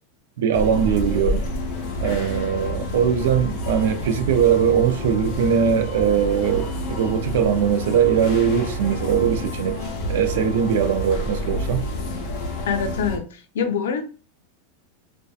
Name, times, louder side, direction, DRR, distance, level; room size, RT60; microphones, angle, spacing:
voice 1, 0.4-1.4 2.0-11.8, right 8 dB, 75° right, 0.4 m, -21 dB
sound 1, 0.5-13.2, left 1 dB, 45° left, 0.7 m, -28 dB
voice 2, 12.7-14.0, left 6 dB, 85° left, 0.5 m, -25 dB
2.5 x 2.2 x 2.3 m
supercardioid pair, 150°, 0 cm